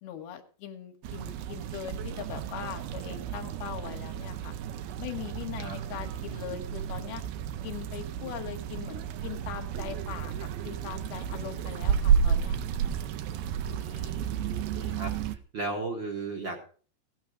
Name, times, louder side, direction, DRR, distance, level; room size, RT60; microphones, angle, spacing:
voice 1, 0.0-4.5 5.0-7.2 7.6-12.6 13.9-14.1, left 10 dB, 75° left, 5 dB, 3.3 m, -41 dB
sound 1, 1.0-15.4, right 8 dB, 75° right, 2.6 m, -32 dB
voice 2, 13.6-15.1 15.5-16.6, right 3 dB, 50° right, 2 dB, 1.4 m, -36 dB
16.5 x 9.3 x 5.0 m, 0.42 s
omnidirectional pair, 4.7 m